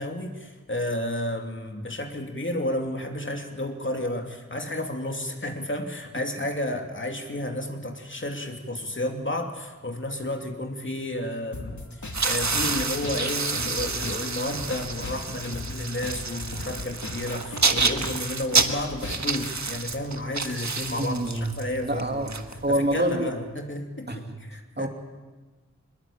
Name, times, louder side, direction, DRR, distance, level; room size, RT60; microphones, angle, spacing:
voice 1, 0.0-22.4 22.7-24.9, left 1 dB, 40° left, 3 dB, 2.8 m, -32 dB
sound 1, 11.5-19.5, left 2 dB, 70° left, 2.7 m, -38 dB
sound 2, 12.1-23.1, right 4 dB, 65° right, 1.6 m, -29 dB
voice 2, 21.0-22.3 22.6-23.3 24.1-24.4 24.8-24.9, right 1 dB, 35° right, 4 dB, 2.6 m, -27 dB
22.5 x 21.0 x 8.8 m, 1.3 s
wide cardioid pair, 65°, 31 cm